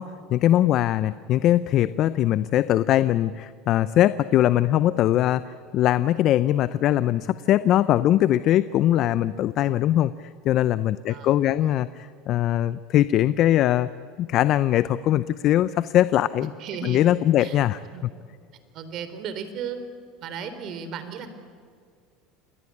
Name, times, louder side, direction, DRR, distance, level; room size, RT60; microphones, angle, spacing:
voice 1, 0.0-13.9 14.2-16.5 16.8-17.8, left 13 dB, 55° left, 15 dB, 0.6 m, -21 dB
voice 2, 11.1-11.8 16.6-17.0 17.4-17.6 17.9-18.0 18.7-19.8 20.2-21.3, right 7 dB, 55° right, 10 dB, 3.8 m, -35 dB
28.0 x 22.0 x 8.6 m, 2.1 s
supercardioid pair, 95°, 0 cm